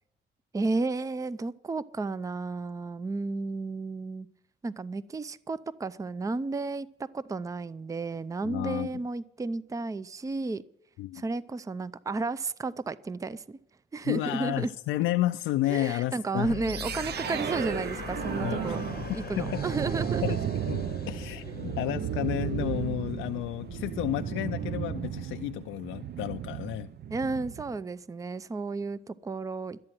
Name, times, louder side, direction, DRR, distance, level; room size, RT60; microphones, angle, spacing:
voice 1, 0.5-4.3 4.6-10.6 11.1-13.6 13.9-14.7 15.7-18.8 19.1-20.4 21.5-21.6 27.1-29.8, right 3 dB, 15° right, 0.5 m, -32 dB
voice 2, 8.4-8.9 11.0-11.2 14.0-16.6 18.4-18.8 19.4-19.6 20.2-20.4 20.7-26.9, left 15 dB, 90° left, 0.4 m, -31 dB
sound 1, 16.4-25.2, left 8 dB, 50° left, 0.8 m, -42 dB
sound 2, 16.6-27.8, right 9 dB, 55° right, 0.7 m, -34 dB
12.5 x 8.7 x 7.5 m
cardioid pair, 90°, 20 cm